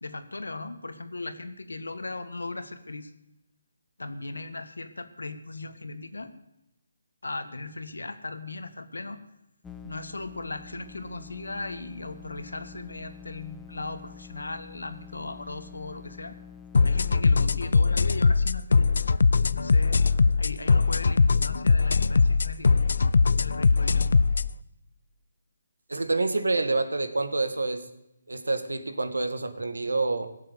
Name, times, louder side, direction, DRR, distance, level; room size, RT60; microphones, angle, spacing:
voice 1, 0.0-3.1 4.0-6.3 7.2-9.2 9.8-16.3 16.8-18.9 19.4-20.0 20.4-22.7 23.4-24.1, left 3 dB, 90° left, 10 dB, 1.7 m, -37 dB
sound 1, 9.6-17.7, left 6 dB, 5° left, 0.8 m, -47 dB
sound 2, 16.7-24.5, left 4 dB, 70° left, 0.5 m, -21 dB
voice 2, 25.9-27.9 28.3-30.3, right 3 dB, 90° right, 9 dB, 1.9 m, -27 dB
16.5 x 7.6 x 8.3 m, 0.88 s
figure-of-eight pair, 155°, 0 cm